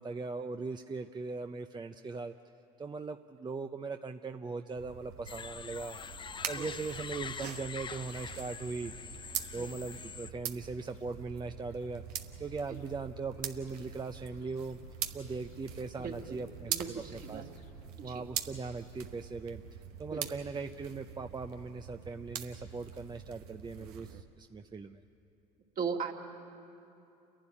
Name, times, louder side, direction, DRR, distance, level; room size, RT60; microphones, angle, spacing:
voice 1, 0.0-2.3 2.8-6.0 6.5-8.9 9.5-12.0 12.4-14.8 15.1-17.4 18.0-25.0, right 4 dB, 25° right, 7 dB, 0.7 m, -40 dB
sound 1, 4.8-24.2, right 9 dB, 85° right, 1.0 m, -44 dB
sound 2, 5.3-10.3, left 6 dB, 25° left, 0.5 m, -44 dB
sound 3, 6.9-17.9, left 4 dB, 80° left, 1.8 m, -59 dB
voice 2, 16.0-16.4 16.7-17.5 18.0-18.2 20.1-20.3 25.8-26.1, right 6 dB, 50° right, 1 dB, 2.4 m, -38 dB
29.0 x 11.5 x 9.9 m, 2.8 s
hypercardioid pair, 70°, 19 cm